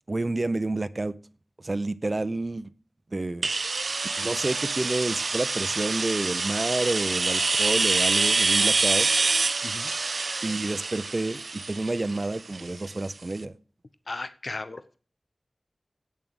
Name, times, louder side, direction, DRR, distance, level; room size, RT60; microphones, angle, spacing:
voice 1, 0.1-1.1 1.6-2.7 3.1-3.5 4.2-9.1 10.4-13.5, right 2 dB, 45° right, 14 dB, 0.7 m, -29 dB
sound 1, 3.4-13.1, right 3 dB, 85° right, 0.6 m, -26 dB
voice 2, 14.1-15.0, left 3 dB, 60° left, 12 dB, 0.7 m, -36 dB
8.6 x 7.3 x 7.8 m, 0.41 s
wide cardioid pair, 60°, 0 cm